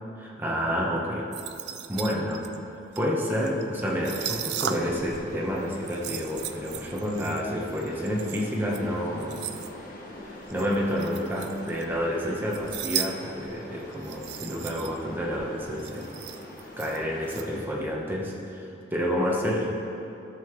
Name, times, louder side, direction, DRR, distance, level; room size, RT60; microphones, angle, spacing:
voice 1, 0.2-1.3 1.9-2.4 3.0-9.4 10.5-16.1 16.8-19.7, equal, 10° right, -3 dB, 1.1 m, -29 dB
sound 1, 1.3-5.2 5.5-9.7 10.5-12.0 12.3-13.1 13.4-13.5 13.9-15.0 15.3-15.4 15.6-17.4, right 10 dB, 60° right, 0.3 m, -36 dB
sound 2, 3.9-17.6, left 1 dB, 45° left, 1.1 m, -44 dB
13.0 x 6.9 x 3.2 m, 2.9 s
head